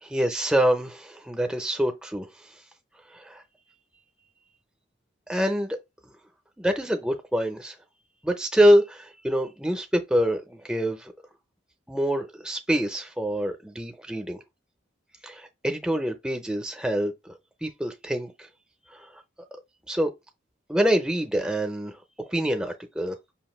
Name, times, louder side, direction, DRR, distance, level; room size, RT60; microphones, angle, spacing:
voice 1, 0.1-2.3 3.1-3.4 5.3-5.8 6.6-7.8 8.2-11.1 11.9-14.4 15.2-17.3 17.6-18.5 18.9-19.2 19.9-20.1 20.7-22.0 22.3-23.1, equal, 5° right, 0.5 m, -25 dB
5.6 x 2.5 x 3.0 m
head